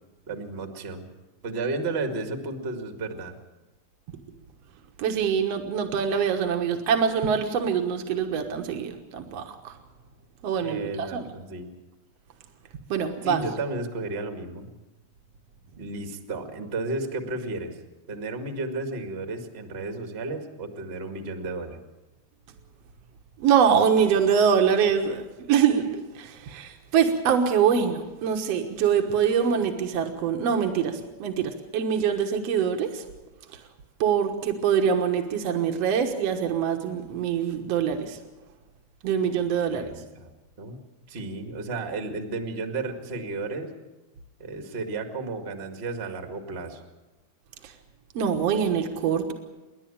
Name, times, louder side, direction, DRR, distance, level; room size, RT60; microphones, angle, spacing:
voice 1, 0.3-1.1 1.4-3.3 10.6-11.7 13.2-14.7 15.8-17.8 18.1-21.8 39.7-40.3 40.6-40.8 41.1-43.7 44.4-46.8, right 3 dB, 35° right, 5 dB, 0.9 m, -33 dB
voice 2, 5.0-9.8 10.4-11.3 12.9-13.4 23.4-33.0 33.5-33.6 34.0-38.2 39.0-40.0 47.6-47.7 48.1-49.3, right 7 dB, 65° right, 4 dB, 1.6 m, -24 dB
28.0 x 11.0 x 8.7 m, 1.1 s
omnidirectional pair, 4.8 m